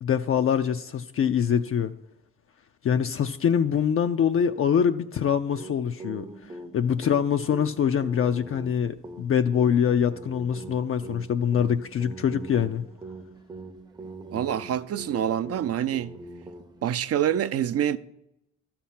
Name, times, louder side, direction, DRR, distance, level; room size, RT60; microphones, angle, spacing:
voice 1, 0.0-1.9 2.8-12.8, left 8 dB, 45° left, 0.5 m, -24 dB
sound 1, 5.5-16.9, right 2 dB, 15° right, 0.7 m, -43 dB
voice 2, 14.3-16.1 16.8-18.0, right 10 dB, 50° right, 0.5 m, -26 dB
12.0 x 4.4 x 7.4 m
cardioid pair, 90°, 30 cm